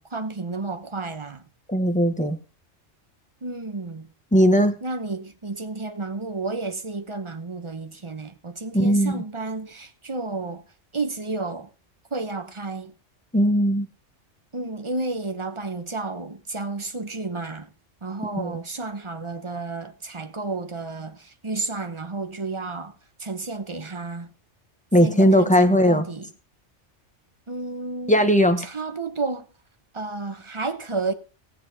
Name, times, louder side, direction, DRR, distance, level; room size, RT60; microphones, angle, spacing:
voice 1, 0.0-1.5 3.4-4.1 4.8-10.6 10.9-11.7 12.1-12.9 14.5-17.7 18.0-24.3 25.0-26.3 27.5-28.2 28.6-29.5 29.9-31.1, right 3 dB, 25° right, 1.0 m, -31 dB
voice 2, 1.7-2.4 4.3-4.8 8.7-9.2 13.3-13.9 18.4-18.5 24.9-26.1 28.1-28.6, equal, 5° left, 1.2 m, -18 dB
18.0 x 7.5 x 4.1 m
omnidirectional pair, 1.2 m